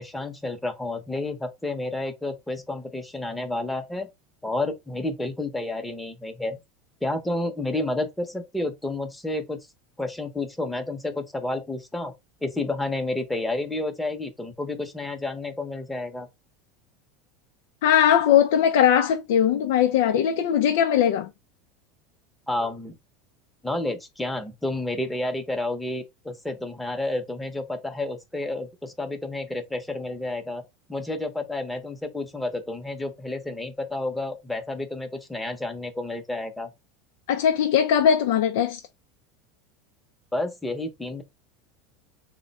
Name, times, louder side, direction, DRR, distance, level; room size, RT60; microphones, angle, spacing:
voice 1, 0.0-4.1 4.4-6.6 7.0-9.6 10.0-12.1 12.4-16.3 22.5-23.0 23.6-30.6 30.9-36.7 40.3-41.2, left 2 dB, 5° left, 0.8 m, -30 dB
voice 2, 17.8-21.3 37.3-38.8, left 9 dB, 80° left, 0.4 m, -20 dB
3.6 x 2.2 x 4.0 m
supercardioid pair, 120°, 0 cm